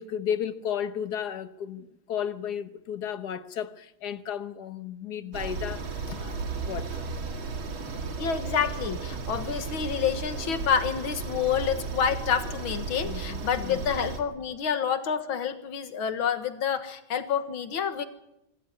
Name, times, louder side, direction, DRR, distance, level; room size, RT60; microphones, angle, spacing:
voice 1, 0.0-7.1 13.0-13.8, left 8 dB, 60° left, 1.6 m, -34 dB
sound 1, 5.3-14.2, right 4 dB, 85° right, 2.9 m, -34 dB
voice 2, 8.2-18.1, left 7 dB, 90° left, 2.3 m, -28 dB
25.0 x 14.0 x 9.9 m
omnidirectional pair, 2.2 m